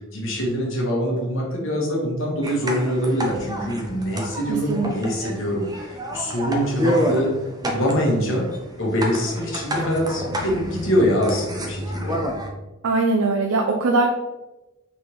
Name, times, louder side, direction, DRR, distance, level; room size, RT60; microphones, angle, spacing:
voice 1, 0.1-7.3 7.7-8.5 8.8-12.2, equal, 65° left, -2 dB, 1.2 m, -24 dB
sound 1, 2.4-12.5, equal, 20° right, 0.5 m, -29 dB
voice 2, 4.5-4.9 5.2-5.3 12.8-14.1, right 3 dB, 85° right, 2 dB, 0.5 m, -21 dB
4.2 x 3.5 x 3.1 m, 1.0 s
head